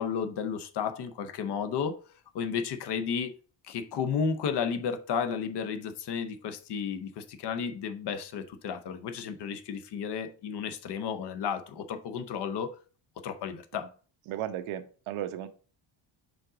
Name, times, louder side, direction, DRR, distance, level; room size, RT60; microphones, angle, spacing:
voice 1, 0.0-2.0 2.3-3.3 3.6-12.7 13.2-13.9, left 6 dB, 60° left, 0.8 m, -33 dB
voice 2, 14.3-15.5, right 11 dB, 85° right, 0.9 m, -35 dB
5.2 x 3.9 x 4.9 m
cardioid pair, 170°, 48 cm